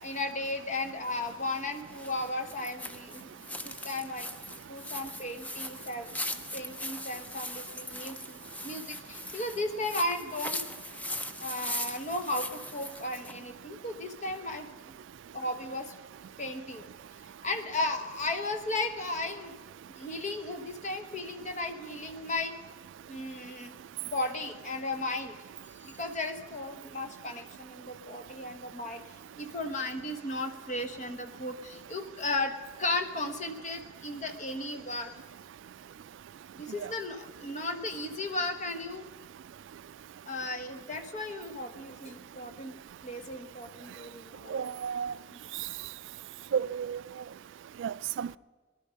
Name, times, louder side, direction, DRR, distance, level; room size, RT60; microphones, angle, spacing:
voice 1, 0.0-3.3 3.6-4.3 4.7-6.1 6.5-10.6 11.4-14.7 15.3-15.9 16.4-16.9 17.4-19.5 19.9-22.5 23.1-23.7 24.0-25.4 25.8-29.0 29.4-35.1 36.5-39.1 40.3-44.8 45.3-45.4, left 2 dB, 40° left, 1.1 m, -35 dB
sound 1, 1.1-13.4, left 1 dB, 10° left, 0.5 m, -40 dB
voice 2, 44.5-45.1 46.5-47.0 47.8-48.4, right 7 dB, 65° right, 0.3 m, -32 dB
18.5 x 11.5 x 5.2 m
head